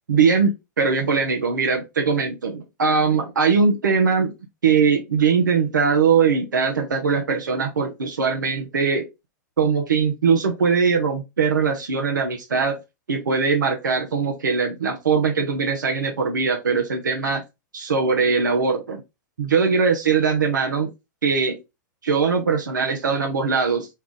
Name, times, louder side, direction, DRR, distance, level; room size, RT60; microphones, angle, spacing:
voice 1, 0.1-4.3 4.6-9.1 9.6-12.8 13.1-17.4 17.7-19.0 19.4-20.9 21.2-21.6 22.0-23.9, right 5 dB, 90° right, 0.8 m, -21 dB
4.5 x 2.4 x 3.6 m
hypercardioid pair, 110°, 10 cm